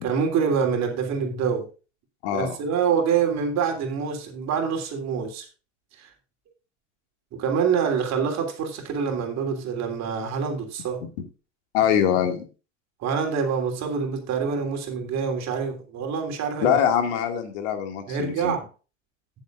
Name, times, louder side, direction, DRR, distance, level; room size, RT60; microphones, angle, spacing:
voice 1, 0.0-1.7 2.3-5.5 5.9-6.1 7.3-11.0 13.0-16.8 18.1-18.6, right 6 dB, 45° right, 3.2 m, -26 dB
voice 2, 2.2-2.6 11.7-12.4 16.6-18.6, left 9 dB, 65° left, 2.2 m, -23 dB
18.0 x 7.2 x 2.5 m
hypercardioid pair, 85°, 37 cm